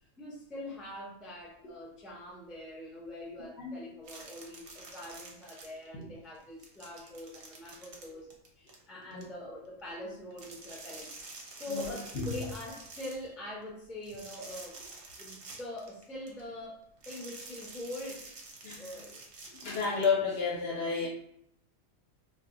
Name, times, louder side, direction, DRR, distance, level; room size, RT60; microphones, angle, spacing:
voice 1, 0.2-8.3 8.6-11.1 11.5-14.8 15.2-18.3 18.8-19.2 21.0-21.1, left 1 dB, ahead, -4 dB, 0.3 m, -43 dB
sound 1, 4.0-6.0 6.3-9.2 10.3-13.3 14.0-16.4 17.0-20.1, right 3 dB, 55° right, 0.7 m, -48 dB
voice 2, 11.7-12.3 18.6-18.8 19.6-21.1, left 5 dB, 65° left, -1 dB, 0.7 m, -31 dB
2.2 x 2.0 x 3.6 m, 0.72 s
omnidirectional pair, 1.3 m